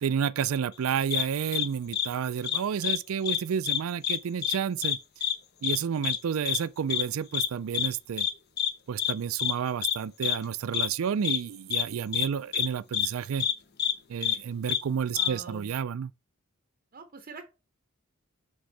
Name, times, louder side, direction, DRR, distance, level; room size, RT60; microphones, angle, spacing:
voice 1, 0.0-5.0 5.6-8.3 8.9-13.5 14.1-16.1, right 7 dB, 80° right, 0.4 m, -30 dB
sound 1, 1.1-1.2 1.5-1.7 1.9-2.1 2.4-3.0 3.2-3.4 3.6-4.2 4.4-4.6 4.8-5.0 5.2-5.3 5.6-5.8 6.0-6.2 6.4-6.6 6.9-7.0 7.3-7.5 7.7-7.9 8.2-8.3 8.6-8.7 9.0-9.1 9.4-9.5 9.8-9.9 10.2-10.4 10.7-10.9 11.2-11.4 11.7-11.8 12.1-12.3 12.5-12.7 12.9-13.1 13.4-13.5 13.8-13.9 14.2-14.4 14.7-14.8 15.2-15.3, left 9 dB, 50° left, 0.7 m, -27 dB
voice 2, 15.1-15.7 16.9-17.4, right 4 dB, 45° right, 0.7 m, -44 dB
7.7 x 3.7 x 3.3 m
head